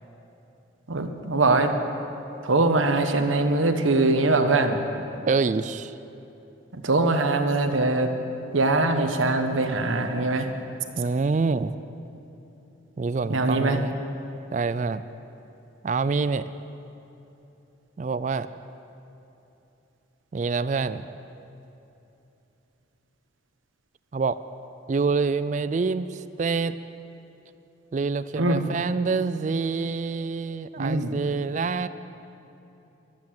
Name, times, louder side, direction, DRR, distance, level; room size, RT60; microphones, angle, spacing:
voice 1, 0.9-1.7 2.4-4.8 6.7-8.1 8.5-10.5 13.3-13.8 28.4-28.6 30.8-31.1, right 2 dB, 90° right, 6 dB, 1.2 m, -22 dB
voice 2, 5.3-5.9 10.9-11.7 13.0-13.9 14.5-15.0 15.8-16.4 18.0-18.5 20.3-21.1 24.1-24.4 24.9-26.8 27.9-31.9, right 4 dB, 40° right, 14 dB, 0.3 m, -26 dB
14.5 x 12.0 x 7.6 m, 2.9 s
head